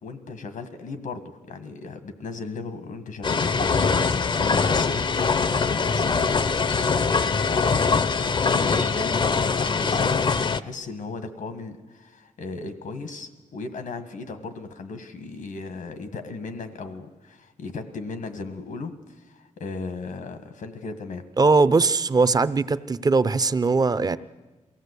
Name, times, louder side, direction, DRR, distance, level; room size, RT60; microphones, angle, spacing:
voice 1, 0.0-6.3 6.8-21.2, left 4 dB, 90° left, 1.7 m, -36 dB
sound 1, 3.2-10.6, left 5 dB, 40° left, 0.6 m, -22 dB
voice 2, 21.4-24.2, right 4 dB, 30° right, 0.6 m, -20 dB
23.0 x 16.5 x 8.2 m
wide cardioid pair, 125°, 13 cm